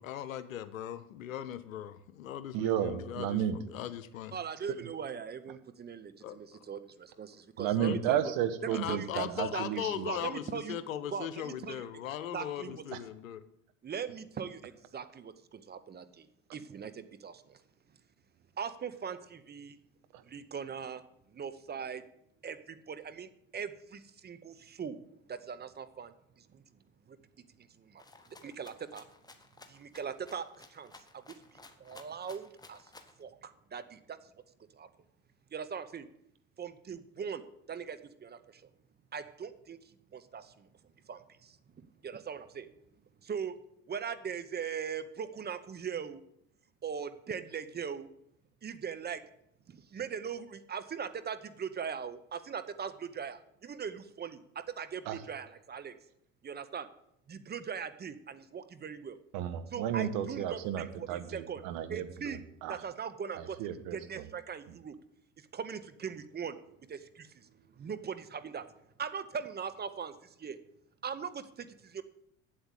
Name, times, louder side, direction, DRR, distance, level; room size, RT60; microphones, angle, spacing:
voice 1, 0.0-4.4 6.2-6.6 7.7-8.0 8.7-13.4, left 10 dB, 80° left, 13 dB, 0.8 m, -39 dB
voice 2, 2.5-3.6 4.8-4.9 7.6-10.1 12.9-13.0 20.1-20.2 55.0-55.2 59.3-62.8 63.4-64.3 64.7-64.8, right 10 dB, 60° right, 10 dB, 1.3 m, -33 dB
voice 3, 4.3-8.2 8.6-9.2 9.5-10.7 11.1-11.8 12.3-12.8 13.8-16.3 16.5-17.6 18.6-19.8 20.3-21.0 21.3-22.0 22.4-25.0 25.3-26.6 27.1-27.2 27.9-28.0 28.4-29.0 29.7-31.2 31.8-32.8 33.2-34.2 34.8-34.9 35.5-36.1 36.6-37.4 37.7-38.7 39.1-39.8 40.1-40.7 41.1-41.6 42.0-42.7 43.2-43.6 43.9-46.2 46.8-48.1 48.6-49.2 49.7-54.4 54.8-55.9 56.4-56.9 57.3-59.2 59.7-61.6 61.9-62.4 62.7-63.6 63.9-64.9 65.5-66.5 66.9-67.5 67.8-68.6 69.0-70.1 70.4-70.6 71.0-72.0, right 7 dB, 25° right, 11 dB, 0.8 m, -40 dB
Rattle (instrument), 28.0-33.2, left 3 dB, 10° left, 1.3 m, -55 dB
8.0 x 8.0 x 8.1 m, 0.76 s
figure-of-eight pair, 65°, 40 cm